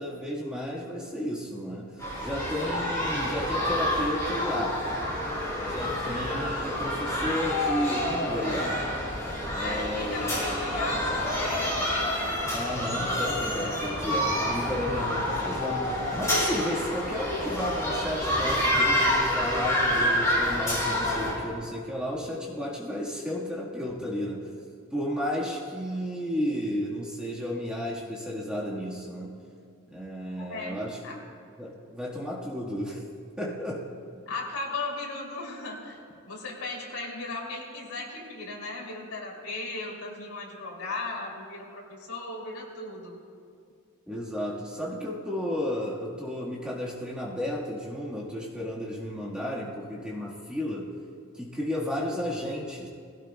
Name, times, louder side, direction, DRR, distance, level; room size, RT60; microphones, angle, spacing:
voice 1, 0.0-4.8 5.6-8.8 9.5-10.4 12.5-24.5 24.9-29.4 29.9-31.2 31.6-33.0 33.4-33.9 44.1-50.9 51.3-52.9, left 1 dB, 5° right, -5 dB, 1.5 m, -33 dB
sound 1, 2.0-21.3, left 1 dB, 15° left, 4.1 m, -28 dB
voice 2, 9.6-11.8 30.4-31.2 34.3-36.0 36.3-43.2, left 3 dB, 85° left, -2 dB, 3.0 m, -36 dB
20.0 x 16.5 x 2.3 m, 2.3 s
head